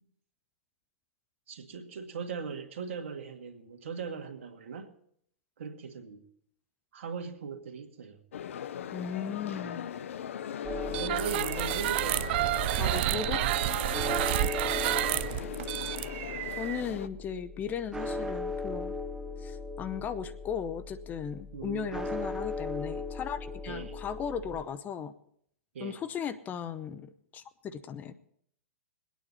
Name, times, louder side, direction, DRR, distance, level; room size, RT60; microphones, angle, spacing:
voice 1, 1.5-4.9 5.6-6.2 6.9-8.2 10.9-13.8 21.5-22.0 23.7-24.0 25.7-26.0, right 6 dB, 70° right, 6 dB, 1.8 m, -39 dB
sound 1, 8.3-17.1, left 8 dB, 70° left, 0.6 m, -39 dB
voice 2, 8.9-9.9 12.8-13.4 16.6-18.9 19.4-25.1 25.8-28.1, left 7 dB, 25° left, 12 dB, 0.6 m, -37 dB
sound 2, 10.6-24.6, left 2 dB, 5° right, 0.9 m, -38 dB
sound 3, 10.9-16.8, right 15 dB, 50° right, 0.5 m, -30 dB
22.0 x 9.2 x 4.1 m, 0.68 s
hypercardioid pair, 120°, 7 cm